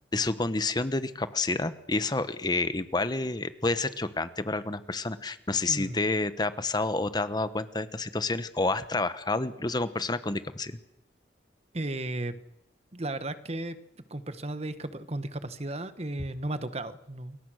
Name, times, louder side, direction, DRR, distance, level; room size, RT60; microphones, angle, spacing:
voice 1, 0.1-10.8, left 3 dB, 25° left, 12 dB, 1.0 m, -29 dB
voice 2, 5.7-6.0 11.7-12.3 12.9-13.8 14.1-17.4, right 2 dB, 35° right, 12 dB, 1.3 m, -34 dB
29.0 x 22.0 x 6.4 m, 0.83 s
head